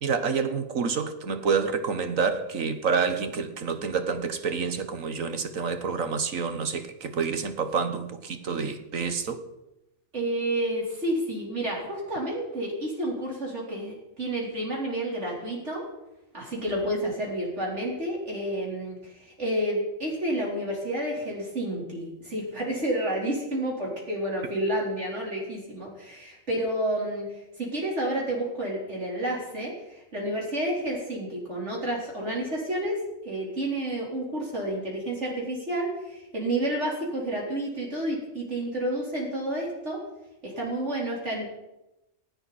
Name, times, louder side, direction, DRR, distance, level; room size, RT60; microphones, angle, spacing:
voice 1, 0.0-9.4, right 5 dB, 80° right, 9 dB, 1.8 m, -28 dB
voice 2, 10.1-15.8 16.3-27.3 27.6-33.0 33.2-40.0 40.4-41.5, right 1 dB, 60° right, -4 dB, 4.6 m, -30 dB
19.0 x 16.0 x 4.3 m, 0.93 s
omnidirectional pair, 1.4 m